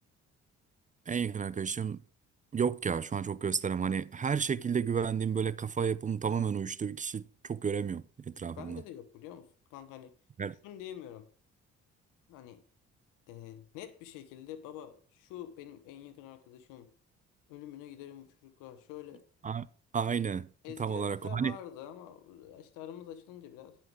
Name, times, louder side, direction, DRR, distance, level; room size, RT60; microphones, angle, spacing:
voice 1, 1.1-2.0 2.5-8.8 10.4-10.5 19.4-19.7 19.9-20.5 20.8-21.6, right 6 dB, 25° right, 0.4 m, -32 dB
voice 2, 8.6-10.1 10.6-11.3 12.3-12.6 13.3-16.9 17.5-19.2 20.6-23.8, left 11 dB, 90° left, 1.1 m, -47 dB
9.9 x 5.8 x 4.7 m
supercardioid pair, 65°, 31 cm